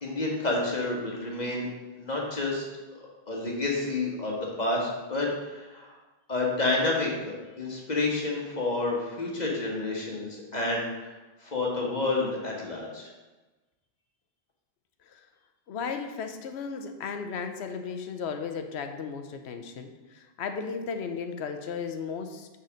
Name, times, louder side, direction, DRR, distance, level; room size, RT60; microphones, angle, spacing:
voice 1, 0.0-1.7 2.0-2.7 3.3-5.9 6.3-11.1 11.4-13.1, left 2 dB, 40° left, -2 dB, 1.6 m, -29 dB
voice 2, 15.7-22.5, left 5 dB, 80° left, 6 dB, 1.0 m, -35 dB
6.5 x 4.2 x 6.3 m, 1.2 s
omnidirectional pair, 1.1 m